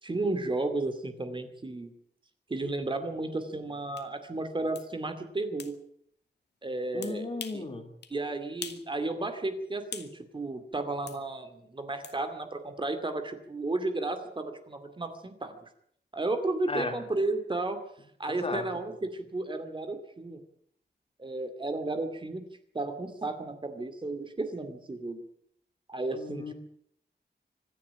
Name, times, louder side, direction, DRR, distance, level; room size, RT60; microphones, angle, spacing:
voice 1, 0.0-1.9 2.5-5.7 6.6-7.3 7.5-7.6 8.1-15.6 16.1-17.8 18.2-20.4 21.2-22.4 22.7-25.2 25.9-26.5, right 2 dB, 30° right, 7 dB, 2.4 m, -33 dB
sound 1, 4.0-4.1 4.7-4.9 5.6-5.7 7.0-7.6 8.0-8.2 8.6-8.9 9.2-10.1 11.1-11.2 12.0-12.2, left 6 dB, 75° left, 2.0 m, -42 dB
voice 2, 6.9-7.9 16.7-16.9 18.3-18.6 26.1-26.5, left 3 dB, 35° left, 5 dB, 2.9 m, -35 dB
25.5 x 11.0 x 9.9 m, 0.68 s
wide cardioid pair, 175°, 18 cm